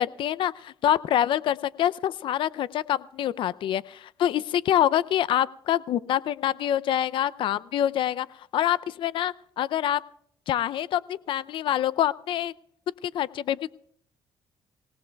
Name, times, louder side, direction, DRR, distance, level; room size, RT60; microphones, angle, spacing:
voice 1, 0.0-8.3 8.5-10.0 10.5-12.5 13.0-13.7, left 11 dB, 70° left, 17 dB, 0.5 m, -26 dB
26.5 x 17.5 x 2.3 m, 0.67 s
cardioid pair, 85°, 9 cm